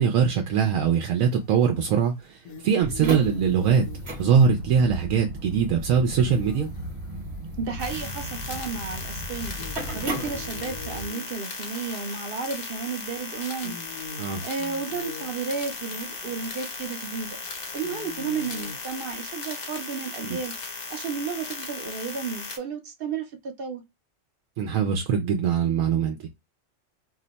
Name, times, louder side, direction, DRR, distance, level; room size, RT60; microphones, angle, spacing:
voice 1, 0.0-3.8 4.2-6.7 14.2-14.4 20.2-20.4 24.6-26.2, right 7 dB, 90° right, 1.0 m, -22 dB
sound 1, 1.0-1.5 2.0-7.8 8.4-8.5 8.9-11.9 12.7-13.0 13.4-19.2, left 4 dB, 70° left, 0.9 m, -43 dB
sound 2, 2.8-11.1, right 1 dB, 40° right, 1.1 m, -35 dB
voice 2, 7.6-9.6 9.9-13.7 14.4-17.4 17.7-23.8, right 5 dB, 55° right, 0.7 m, -33 dB
sound 3, 7.8-22.6, left 4 dB, 45° left, 0.6 m, -37 dB
2.7 x 2.2 x 3.9 m
omnidirectional pair, 1.3 m